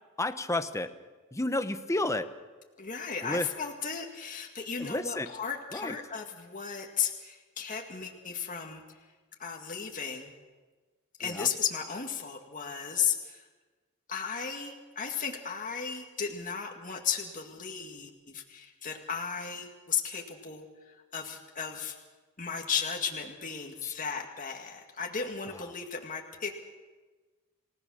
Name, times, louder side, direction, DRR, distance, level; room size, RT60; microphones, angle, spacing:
voice 1, 0.2-0.9 1.3-2.3 3.2-3.5 4.8-5.3 5.7-6.0 11.2-11.5 23.8-23.9, left 2 dB, 15° left, 10 dB, 0.9 m, -31 dB
voice 2, 2.8-9.1 9.4-10.3 11.2-13.5 14.1-22.0 22.4-26.5, left 7 dB, 40° left, 1 dB, 2.0 m, -35 dB
28.5 x 17.5 x 6.4 m, 1.3 s
head